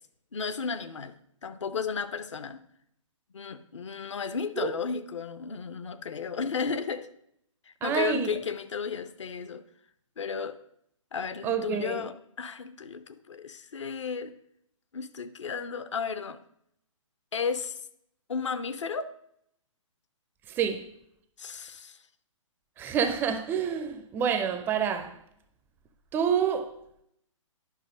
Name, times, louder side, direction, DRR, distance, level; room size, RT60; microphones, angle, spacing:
voice 1, 0.3-1.1 1.4-2.6 3.3-7.1 7.8-9.6 10.2-10.6 11.1-14.3 14.9-16.4 17.3-17.8 18.3-19.1 21.4-22.0, left 5 dB, 60° left, 0.7 m, -33 dB
voice 2, 7.8-8.3 11.4-12.0 20.5-20.9 22.8-25.2 26.1-26.7, right 7 dB, 10° right, 0.4 m, -28 dB
10.0 x 5.8 x 5.0 m
figure-of-eight pair, 125°, 17 cm